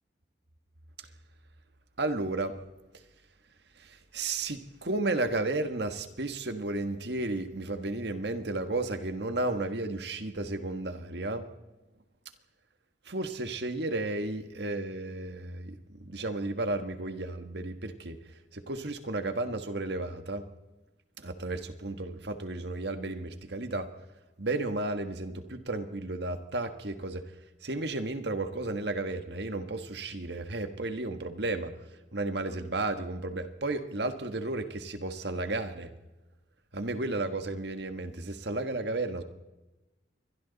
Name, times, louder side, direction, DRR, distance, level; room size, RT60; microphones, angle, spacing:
voice 1, 2.0-2.5 3.8-11.5 13.1-18.2 18.5-20.4 21.2-23.9 24.4-27.2 27.6-31.7 32.1-35.9 36.7-39.2, right 2 dB, 65° right, 8 dB, 1.6 m, -33 dB
28.0 x 23.0 x 4.1 m, 1.1 s
head